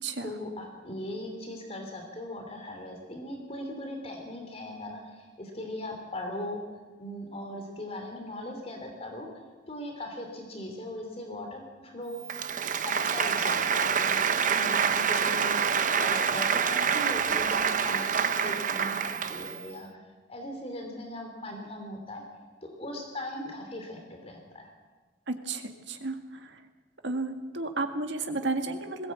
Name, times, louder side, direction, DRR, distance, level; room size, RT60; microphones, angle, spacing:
voice 1, 0.2-6.6 7.0-9.3 9.7-15.6 16.0-19.9 20.3-22.2 22.7-24.7, left 1 dB, 35° left, 3 dB, 3.1 m, -39 dB
Applause, 12.2-19.6, right 6 dB, 45° right, 0.9 m, -27 dB
voice 2, 25.3-26.6 27.0-29.1, right 3 dB, 75° right, 6 dB, 2.0 m, -33 dB
21.0 x 16.5 x 8.5 m, 1.4 s
head